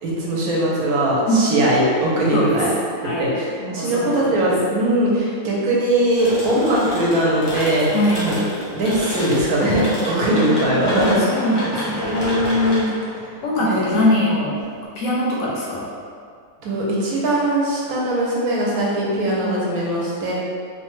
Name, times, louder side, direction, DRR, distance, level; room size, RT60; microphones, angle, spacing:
voice 1, 0.0-2.7 3.0-3.5 3.7-7.9 8.2-8.4 8.7-11.2 12.0-12.9 13.6-13.9 16.6-20.3, right 1 dB, 70° right, -5 dB, 1.1 m, -20 dB
voice 2, 3.6-4.5 7.9-8.3 10.1-12.2 13.4-14.6 15.0-15.9, equal, 70° left, -5 dB, 0.9 m, -22 dB
sound 1, 6.2-14.8, equal, 40° left, 0.3 m, -29 dB
3.0 x 2.1 x 3.1 m, 2.1 s
omnidirectional pair, 1.6 m